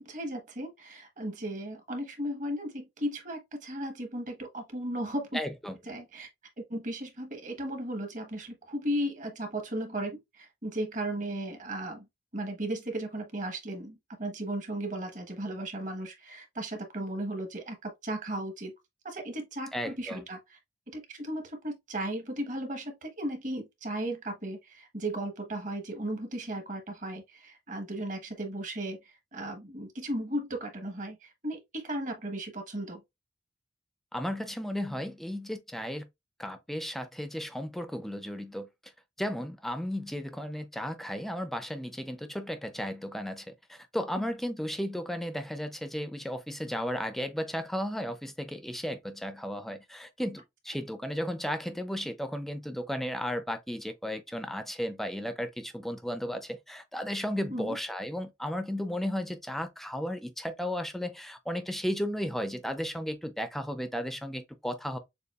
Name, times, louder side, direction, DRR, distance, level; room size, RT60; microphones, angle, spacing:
voice 1, 0.0-5.4 5.9-6.3 6.7-12.0 12.3-18.7 19.0-20.6 20.9-33.0 44.2-44.3 57.5-57.8, right 1 dB, 45° right, 1.2 m, -36 dB
voice 2, 5.3-5.8 19.7-20.2 34.1-36.0 36.4-38.7 39.2-65.0, equal, ahead, 0.5 m, -34 dB
6.7 x 2.3 x 2.4 m
head